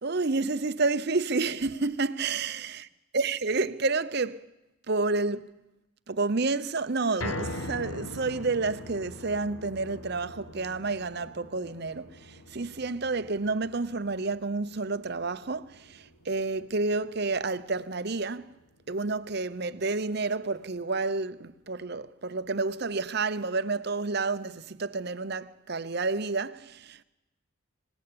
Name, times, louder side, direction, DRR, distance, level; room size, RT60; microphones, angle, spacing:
voice 1, 0.0-2.8 3.1-4.5 4.9-5.5 6.1-18.5 18.9-27.0, right 3 dB, 50° right, 0.9 m, -30 dB
sound 1, 7.2-19.4 19.8-19.9 20.4-20.5, left 1 dB, 75° left, 1.6 m, -43 dB
26.0 x 18.5 x 8.8 m
head